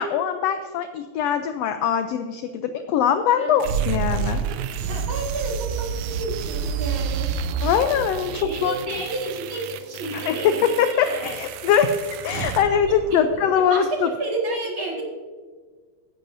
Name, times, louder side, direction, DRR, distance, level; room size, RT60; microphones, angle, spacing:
voice 1, 0.0-4.4 7.6-9.0 10.1-14.1, left 8 dB, 80° left, 8 dB, 1.5 m, -22 dB
sound 1, 3.6-13.6, right 7 dB, 90° right, 2.1 m, -29 dB
voice 2, 4.9-7.3 8.3-11.3 13.1-15.0, right 2 dB, 45° right, -1 dB, 2.4 m, -31 dB
15.5 x 10.5 x 2.6 m, 1.5 s
omnidirectional pair, 3.3 m